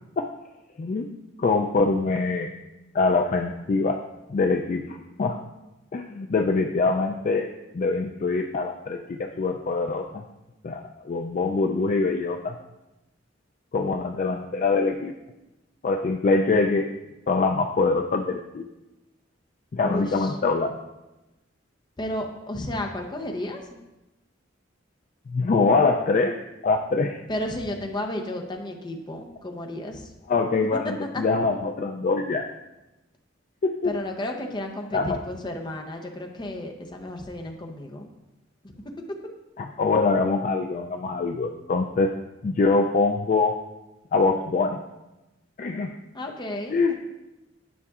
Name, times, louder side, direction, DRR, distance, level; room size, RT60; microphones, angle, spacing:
voice 1, 1.4-2.5 2.9-4.0 4.3-5.4 5.9-7.5 7.7-10.2 10.6-12.5 13.7-15.1 15.8-16.9 17.3-18.6 19.7-20.8 25.3-26.4 26.6-27.2 30.3-32.5 33.6-33.9 34.9-35.2 39.6-42.1 42.4-43.5 44.1-44.8 45.6-45.9 46.7-46.9, left 3 dB, 40° left, 3 dB, 0.3 m, -24 dB
voice 2, 19.8-20.4 22.0-23.8 27.3-30.1 33.8-38.1 46.1-46.9, left 1 dB, 25° left, 3 dB, 0.7 m, -33 dB
9.6 x 5.7 x 2.4 m, 1.0 s
head